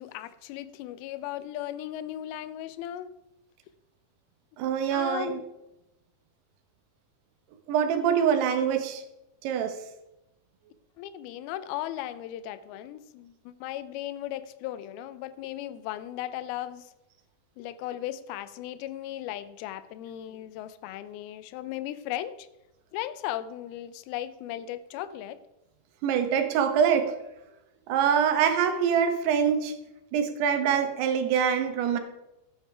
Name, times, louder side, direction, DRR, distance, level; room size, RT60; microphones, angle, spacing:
voice 1, 0.0-3.1 4.9-5.4 8.2-8.3 11.0-16.9 17.6-22.5 22.9-25.4, left 12 dB, 80° left, 13 dB, 2.4 m, -36 dB
voice 2, 4.6-5.4 7.7-9.0 9.4-9.8 26.0-27.1 27.9-29.7 30.1-32.0, right 7 dB, 85° right, 7 dB, 3.0 m, -24 dB
14.0 x 8.7 x 3.3 m, 0.92 s
omnidirectional pair, 4.7 m